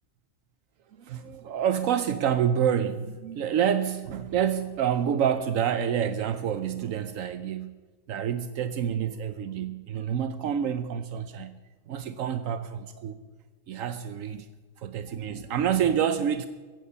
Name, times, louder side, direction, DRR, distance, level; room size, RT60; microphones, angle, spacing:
voice 1, 1.0-7.7 8.1-11.6 11.9-13.2 13.7-14.5 14.8-16.5, right 8 dB, 80° right, 1.1 m, -28 dB
16.0 x 15.0 x 5.6 m
omnidirectional pair, 1.4 m